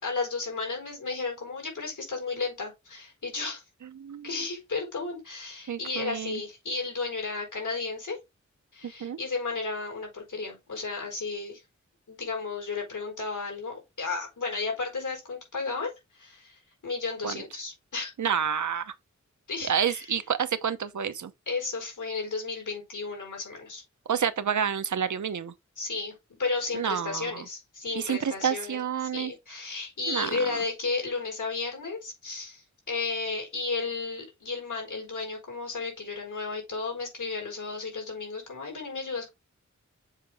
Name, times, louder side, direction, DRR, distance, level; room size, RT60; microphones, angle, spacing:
voice 1, 0.0-3.6 4.2-8.2 8.7-11.6 12.1-18.1 19.5-20.1 21.5-23.8 25.8-28.8 29.1-39.3, left 4 dB, 90° left, 4.5 m, -33 dB
voice 2, 4.0-4.3 5.7-6.4 9.0-9.2 17.2-17.4 18.2-18.9 19.7-21.3 24.1-25.5 26.7-27.4 28.0-29.3 30.1-30.4, right 8 dB, 80° right, 0.8 m, -29 dB
7.3 x 4.9 x 3.5 m
wide cardioid pair, 75°, 29 cm